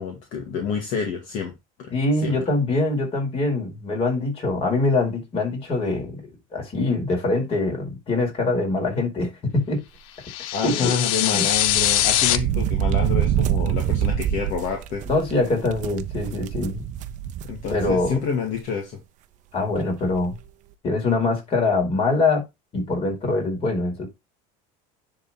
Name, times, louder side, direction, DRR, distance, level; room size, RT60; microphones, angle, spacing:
voice 1, 0.0-1.5 1.8-1.9 2.2-2.3 10.5-15.0 17.4-19.0, left 6 dB, 50° left, 2.3 m, -28 dB
voice 2, 1.9-6.2 6.5-9.8 10.6-11.0 11.2-11.5 15.1-16.8 17.7-18.2 19.5-20.4 20.8-22.4 22.7-24.1, left 2 dB, 35° left, 4.8 m, -23 dB
sound 1, 10.2-12.4, left 13 dB, 85° left, 0.9 m, -22 dB
sound 2, 11.5-18.2 18.6-18.7 19.7-19.8 20.1-20.4, right 10 dB, 45° right, 0.8 m, -26 dB
10.0 x 4.1 x 4.3 m
cardioid pair, 135°, 17 cm